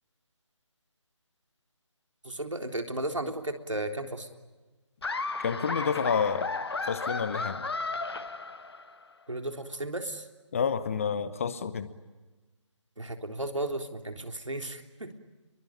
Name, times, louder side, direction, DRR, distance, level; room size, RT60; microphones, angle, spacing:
voice 1, 2.2-4.3 9.3-10.3 13.0-15.1, right 1 dB, 75° right, 6 dB, 3.6 m, -34 dB
Laughter, 5.0-9.0, left 3 dB, 50° left, 1.4 m, -34 dB
voice 2, 5.4-6.5 6.8-7.7 10.5-11.9, left 6 dB, 25° left, 14 dB, 1.1 m, -29 dB
30.0 x 23.0 x 8.8 m, 1.2 s
figure-of-eight pair, 155°, 16 cm